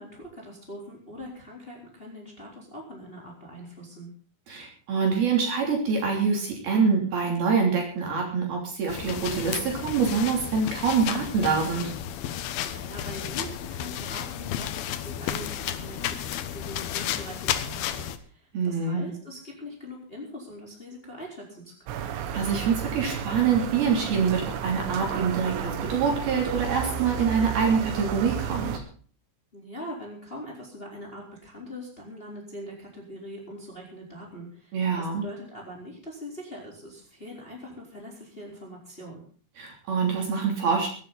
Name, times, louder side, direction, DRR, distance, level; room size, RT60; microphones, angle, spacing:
voice 1, 0.0-4.1 12.6-22.0 29.5-39.2, equal, 10° left, -1 dB, 3.8 m, -42 dB
voice 2, 4.5-11.9 18.5-19.1 22.3-28.7 34.7-35.2 39.6-40.9, right 5 dB, 50° right, 0 dB, 4.6 m, -25 dB
sound 1, 8.9-18.2, left 10 dB, 80° left, 2.2 m, -32 dB
sound 2, 21.9-28.8, right 8 dB, 80° right, 3.9 m, -32 dB
23.0 x 10.5 x 4.0 m, 0.43 s
omnidirectional pair, 5.9 m